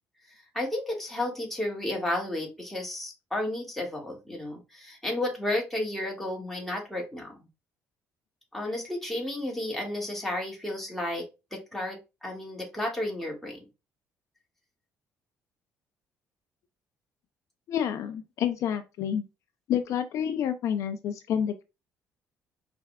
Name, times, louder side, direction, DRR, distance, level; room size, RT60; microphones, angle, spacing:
voice 1, 0.5-7.3 8.5-11.3 11.5-13.6, left 1 dB, 5° left, 2.0 m, -32 dB
voice 2, 17.7-19.2 19.7-21.6, left 9 dB, 70° left, 0.5 m, -29 dB
4.6 x 3.4 x 2.3 m
supercardioid pair, 80°, 6 cm